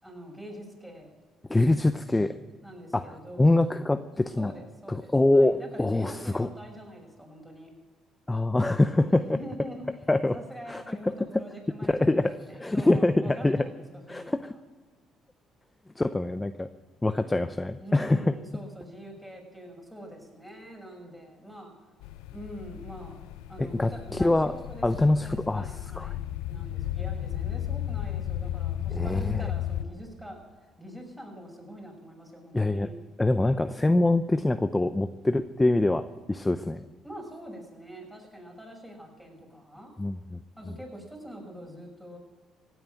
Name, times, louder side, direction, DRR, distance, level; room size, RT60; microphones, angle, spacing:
voice 1, 0.0-1.1 2.6-3.6 4.4-7.7 9.0-9.8 10.3-14.4 17.8-21.7 22.3-24.8 25.2-32.9 37.0-39.9 40.6-42.2, equal, 5° right, 0 dB, 6.5 m, -44 dB
voice 2, 1.5-2.3 2.9-4.5 4.9-6.5 8.3-9.4 10.1-10.4 10.7-11.0 11.9-13.7 14.1-14.5 16.0-16.7 17.0-18.3 23.6-24.5 24.8-25.7 26.0-26.1 28.9-29.5 32.5-32.9 33.2-36.9 40.0-40.4 40.7-40.8, left 2 dB, 15° left, 11 dB, 0.6 m, -24 dB
sound 1, 22.0-29.8, left 12 dB, 85° left, 0.5 m, -34 dB
16.0 x 9.2 x 8.9 m, 1.4 s
supercardioid pair, 70°, 0 cm